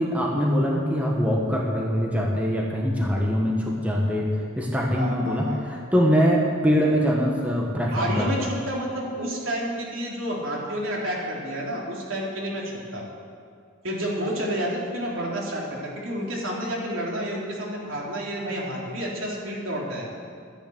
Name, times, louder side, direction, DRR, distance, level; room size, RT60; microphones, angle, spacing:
voice 1, 0.0-8.3, equal, 5° right, -2 dB, 1.4 m, -23 dB
voice 2, 4.9-5.6 7.9-13.0 13.8-20.1, equal, 70° right, -3 dB, 3.4 m, -30 dB
13.5 x 10.5 x 8.0 m, 2.2 s
head